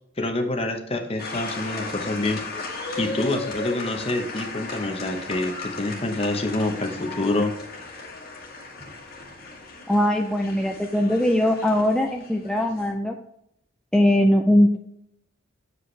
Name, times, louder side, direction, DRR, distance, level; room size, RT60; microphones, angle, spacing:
voice 1, 0.2-2.4 3.0-7.5, left 2 dB, 30° left, 5 dB, 0.9 m, -26 dB
sound 1, 1.2-12.9, left 3 dB, 50° left, 1.7 m, -36 dB
voice 2, 9.9-13.2 13.9-14.8, left 1 dB, 5° left, 1 dB, 0.4 m, -20 dB
7.8 x 5.1 x 3.2 m, 0.76 s
head